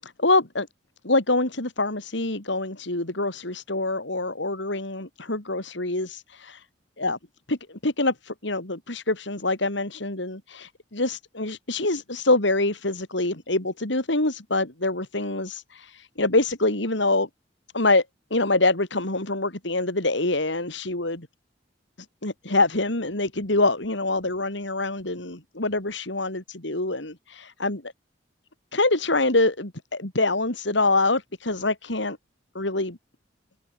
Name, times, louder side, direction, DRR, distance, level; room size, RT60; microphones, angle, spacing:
voice 1, 0.0-0.7 1.0-6.6 7.0-7.2 7.5-17.3 17.7-18.1 18.3-21.3 22.2-27.8 28.7-32.2 32.5-33.0, left 2 dB, 65° left, 3.7 m, -25 dB
open air
head